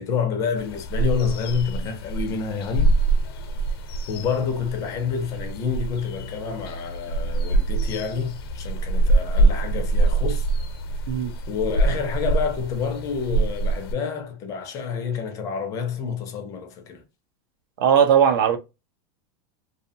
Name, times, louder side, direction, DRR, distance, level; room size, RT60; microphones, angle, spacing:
voice 1, 0.0-3.0 4.1-10.5 11.5-17.0, left 6 dB, 25° left, 0.4 m, -28 dB
sound 1, 0.6-13.9, right 2 dB, 90° left, 0.5 m, -24 dB
voice 2, 17.8-18.6, right 8 dB, 70° right, 0.6 m, -18 dB
2.7 x 2.0 x 2.6 m
supercardioid pair, 165°, 12 cm